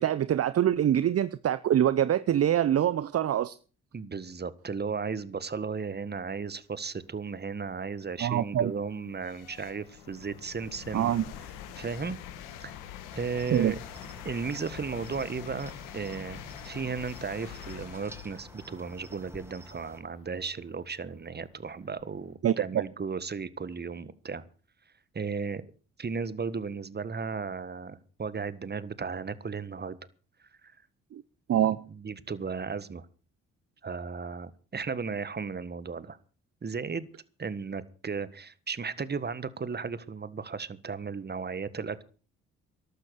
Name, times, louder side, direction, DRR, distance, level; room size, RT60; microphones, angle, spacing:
voice 1, 0.0-3.6 8.2-8.7 10.9-11.2 13.5-13.7 22.4-22.8 31.1-31.2 31.5-31.9, right 10 dB, 50° right, 0.8 m, -25 dB
voice 2, 3.9-11.1 11.7-12.2 12.6-12.7 13.1-13.8 14.2-24.4 25.1-25.6 26.0-30.0 31.9-33.1 33.8-36.2 36.6-37.1 37.4-42.0, right 5 dB, 30° right, 1.5 m, -35 dB
sound 1, 6.8-6.9 7.5-22.3, left 10 dB, 85° left, 1.8 m, -46 dB
Cricket, 13.1-20.0, right 1 dB, 5° right, 5.1 m, -50 dB
14.0 x 12.0 x 6.4 m
hypercardioid pair, 55°, 31 cm